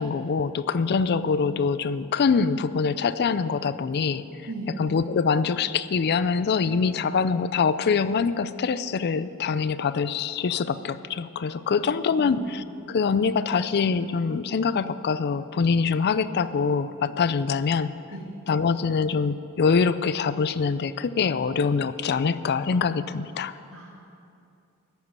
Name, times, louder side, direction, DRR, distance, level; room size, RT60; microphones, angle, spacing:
voice 1, 0.0-4.2 4.8-17.9 18.5-23.5, left 5 dB, 50° left, 14 dB, 0.4 m, -24 dB
voice 2, 4.5-4.8 11.7-11.9 12.2-12.4 18.1-18.3 23.7-24.0, right 2 dB, 65° right, -2 dB, 2.5 m, -37 dB
14.5 x 5.2 x 9.4 m, 2.5 s
head